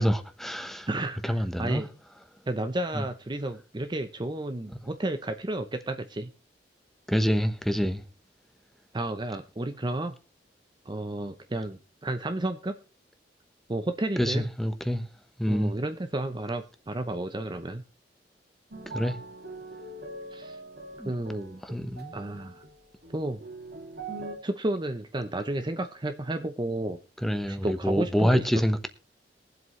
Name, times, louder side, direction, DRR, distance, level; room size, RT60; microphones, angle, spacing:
voice 1, 0.0-0.9 1.2-1.8 2.9-3.0 7.1-8.0 14.2-15.0 15.4-15.7 18.9-19.2 21.0-21.1 21.6-22.2 27.2-28.9, equal, ahead, 1.0 m, -26 dB
voice 2, 0.9-1.9 2.5-6.3 8.9-10.2 10.9-12.8 13.7-14.5 15.5-17.8 20.3-20.6 21.0-21.8 22.1-22.6 23.1-23.4 24.4-27.0 27.5-28.4, right 1 dB, 25° right, 0.7 m, -32 dB
sound 1, 18.7-24.3, right 2 dB, 60° right, 2.4 m, -42 dB
22.0 x 7.9 x 3.2 m
head